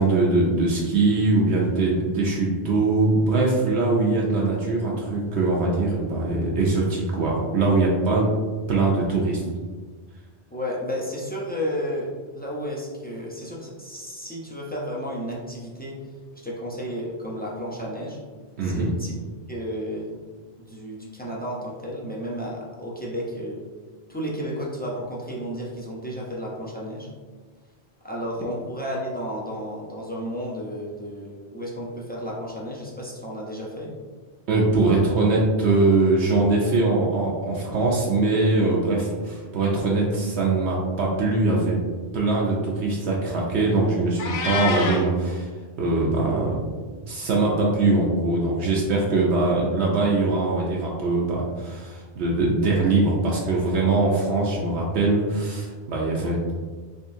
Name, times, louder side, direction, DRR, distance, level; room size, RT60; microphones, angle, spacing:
voice 1, 0.0-8.3 8.7-9.4 18.6-18.9 34.5-41.8 42.1-45.5 45.8-46.6 47.1-56.5, right 3 dB, 75° right, -3 dB, 0.9 m, -22 dB
voice 2, 10.5-16.0 16.4-18.2 18.6-19.1 19.5-20.2 20.7-23.6 24.1-27.1 28.0-33.9, equal, 15° left, -4 dB, 0.4 m, -32 dB
Meow, 44.2-45.1, left 4 dB, 85° left, 0.9 m, -27 dB
3.6 x 3.3 x 2.6 m, 1.4 s
omnidirectional pair, 1.2 m